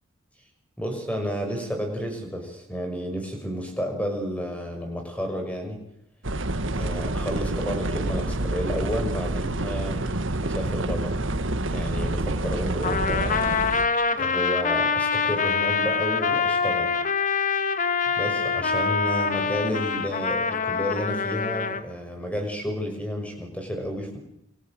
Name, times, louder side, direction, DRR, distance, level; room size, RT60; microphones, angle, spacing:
voice 1, 0.8-5.8 6.7-10.0 10.4-11.1 11.7-13.5 14.2-16.9 18.2-24.2, equal, 5° left, 4 dB, 6.0 m, -31 dB
sound 1, 6.2-13.9, right 2 dB, 70° right, 1.5 m, -28 dB
Trumpet, 12.8-21.8, left 5 dB, 40° left, 1.4 m, -25 dB
29.0 x 24.5 x 7.8 m, 0.78 s
head